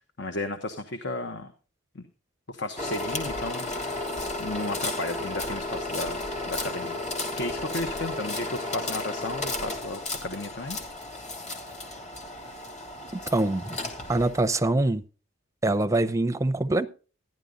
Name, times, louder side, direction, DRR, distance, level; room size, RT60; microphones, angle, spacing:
voice 1, 0.2-1.5 1.9-2.0 2.5-4.1 4.4-7.0 7.4-10.8, left 2 dB, 55° left, 1.1 m, -34 dB
sound 1, 2.8-14.4, left 2 dB, 35° left, 2.7 m, -33 dB
voice 2, 13.1-13.8 14.1-15.0 15.6-16.9, right 2 dB, 15° right, 0.6 m, -24 dB
14.5 x 10.5 x 3.8 m
head